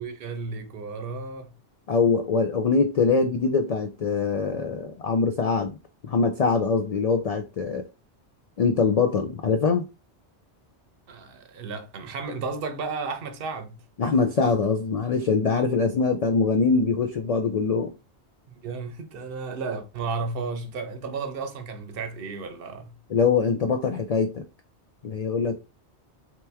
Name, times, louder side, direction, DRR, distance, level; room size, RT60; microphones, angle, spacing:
voice 1, 0.0-1.5 11.1-13.8 18.5-23.0, right 4 dB, 60° right, 0.9 m, -33 dB
voice 2, 1.9-5.8 6.0-7.9 8.6-9.8 14.0-17.9 23.1-24.4 25.0-25.6, left 4 dB, 60° left, 0.4 m, -23 dB
3.2 x 3.0 x 3.3 m
omnidirectional pair, 1.1 m